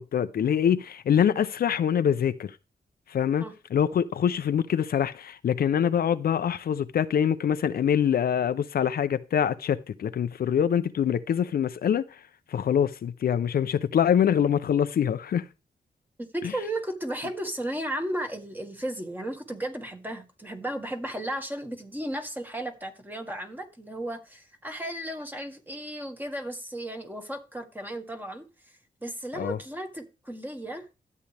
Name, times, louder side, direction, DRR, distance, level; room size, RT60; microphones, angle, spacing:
voice 1, 0.0-2.6 3.1-12.2 12.5-15.5 29.4-29.6, left 8 dB, 70° left, 0.5 m, -25 dB
voice 2, 16.2-28.4 29.0-30.9, right 1 dB, 10° right, 1.6 m, -34 dB
13.0 x 8.4 x 3.3 m
wide cardioid pair, 130°, 16 cm